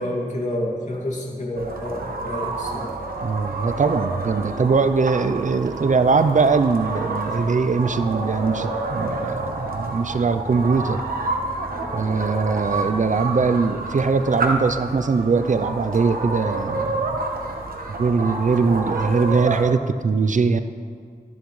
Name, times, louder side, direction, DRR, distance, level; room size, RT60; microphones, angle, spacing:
voice 1, 0.0-2.9, left 1 dB, 55° left, -2 dB, 2.3 m, -29 dB
sound 1, 1.6-19.7, right 2 dB, 85° right, 1.1 m, -29 dB
voice 2, 3.2-11.1 11.9-17.0 18.0-20.6, right 4 dB, 60° right, 11 dB, 0.5 m, -21 dB
13.0 x 10.5 x 3.2 m, 2.1 s
wide cardioid pair, 70°, 15 cm